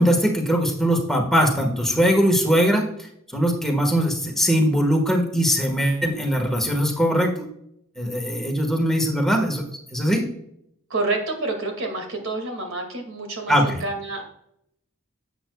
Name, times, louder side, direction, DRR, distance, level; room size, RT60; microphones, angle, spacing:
voice 1, 0.0-7.3 8.0-9.6 9.9-10.2 13.5-13.8, equal, ahead, 1 dB, 1.4 m, -21 dB
voice 2, 10.9-14.2, right 2 dB, 85° right, 3 dB, 2.1 m, -28 dB
11.5 x 8.0 x 2.3 m, 0.74 s
head